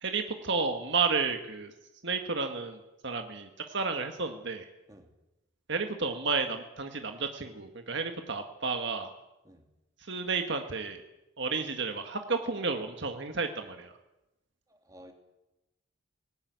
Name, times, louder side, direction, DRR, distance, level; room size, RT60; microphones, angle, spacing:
voice 1, 0.0-1.7 2.0-2.8 3.0-4.7 5.7-9.1 10.1-11.0 11.4-13.9, right 4 dB, 55° right, 5 dB, 1.7 m, -32 dB
voice 2, 14.7-15.1, equal, 15° right, 3 dB, 3.0 m, -53 dB
19.5 x 17.0 x 9.5 m, 0.97 s
head